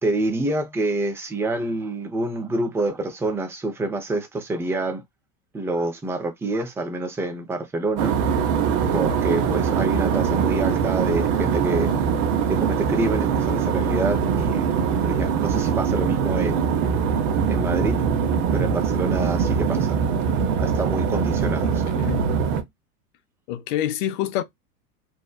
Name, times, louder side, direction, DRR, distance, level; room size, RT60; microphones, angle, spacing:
voice 1, 0.0-5.0 5.5-8.1 8.9-11.9 12.5-14.7 15.0-16.6 17.5-18.0 18.5-19.9 20.6-21.8, right 2 dB, 5° right, 0.4 m, -27 dB
sound 1, 8.0-22.6, right 7 dB, 50° right, 0.7 m, -22 dB
voice 2, 21.6-22.3 23.5-24.4, left 12 dB, 50° left, 0.6 m, -27 dB
2.8 x 2.0 x 2.2 m
hypercardioid pair, 90°, 45 cm